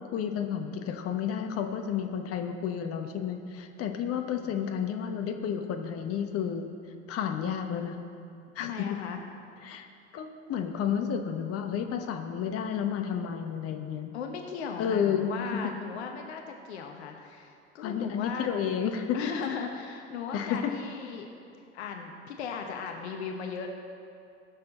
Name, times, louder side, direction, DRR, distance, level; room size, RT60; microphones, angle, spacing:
voice 1, 0.1-6.7 7.1-8.0 8.5-9.0 9.6-9.9 10.1-14.1 14.8-15.7 17.8-19.2 20.3-20.7, left 8 dB, 45° left, 5 dB, 1.1 m, -31 dB
voice 2, 8.6-9.2 14.1-18.5 19.1-21.3 21.7-23.7, left 6 dB, 70° left, 3 dB, 1.0 m, -37 dB
19.5 x 6.7 x 4.2 m, 2.5 s
figure-of-eight pair, 65°, 34 cm